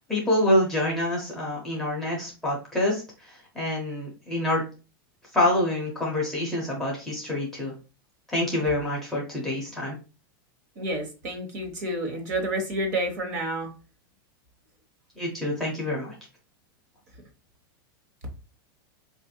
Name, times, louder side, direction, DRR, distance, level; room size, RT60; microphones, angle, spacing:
voice 1, 0.0-4.6 5.3-7.7 8.3-10.0 15.2-16.1, left 1 dB, ahead, -4 dB, 0.5 m, -26 dB
voice 2, 10.8-13.7, right 1 dB, 50° right, 3 dB, 1.1 m, -29 dB
4.4 x 2.4 x 2.7 m, 0.32 s
supercardioid pair, 180°, 12 cm